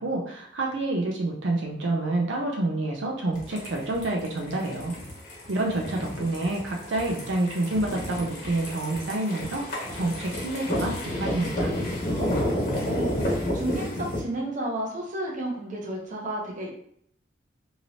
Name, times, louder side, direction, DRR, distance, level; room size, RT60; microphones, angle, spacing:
voice 1, 0.0-4.9 5.5-11.7, right 2 dB, 75° right, 0 dB, 0.5 m, -28 dB
sound 1, 3.3-14.2, left 1 dB, 50° left, 1.2 m, -31 dB
voice 2, 12.1-16.7, right 1 dB, 45° right, -1 dB, 0.7 m, -33 dB
2.9 x 2.8 x 2.7 m, 0.67 s
head